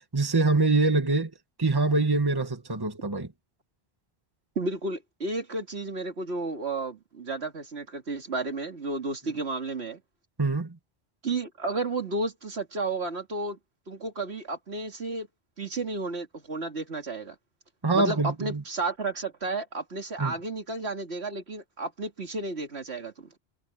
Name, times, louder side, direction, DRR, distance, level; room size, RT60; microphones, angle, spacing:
voice 1, 0.1-1.3 1.6-3.3 10.4-10.7 17.8-18.6 20.2-20.3, right 3 dB, 20° right, 1.5 m, -24 dB
voice 2, 4.6-10.0 11.2-13.6 13.9-15.3 15.6-17.4 17.9-23.3, right 3 dB, 75° right, 2.5 m, -32 dB
omnidirectional pair, 1.1 m